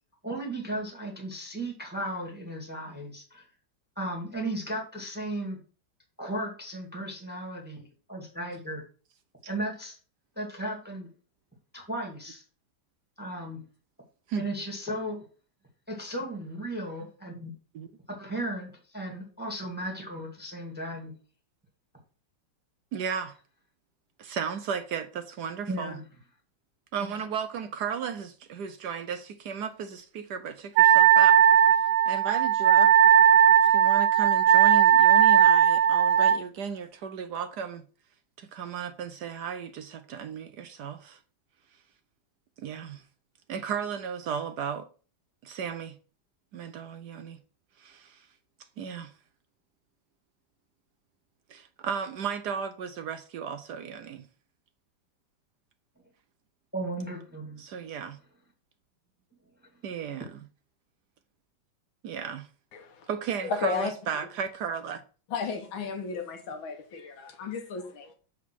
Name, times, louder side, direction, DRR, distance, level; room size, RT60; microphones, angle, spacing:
voice 1, 0.2-3.5 4.0-5.6 6.2-8.8 9.5-10.0 10.4-11.1 11.7-12.4 13.2-13.6 14.3-15.2 15.9-17.5 18.1-21.1 25.7-26.0 56.7-57.6, right 1 dB, 5° right, 1.9 m, -35 dB
voice 2, 22.9-23.4 24.2-25.9 26.9-31.4 32.1-32.9 33.7-37.8 38.4-41.2 42.6-43.0 43.5-44.9 45.4-46.0 46.5-47.4 47.8-48.2 48.8-49.1 51.5-54.3 57.6-58.2 59.8-60.3 62.0-62.5 63.1-65.0, right 7 dB, 65° right, 1.1 m, -34 dB
Wind instrument woodwind instrument, 30.8-36.4, right 9 dB, 85° right, 1.4 m, -18 dB
voice 3, 62.7-63.1 63.4-63.9 65.3-68.1, left 5 dB, 85° left, 1.8 m, -34 dB
8.1 x 3.7 x 6.1 m
omnidirectional pair, 2.1 m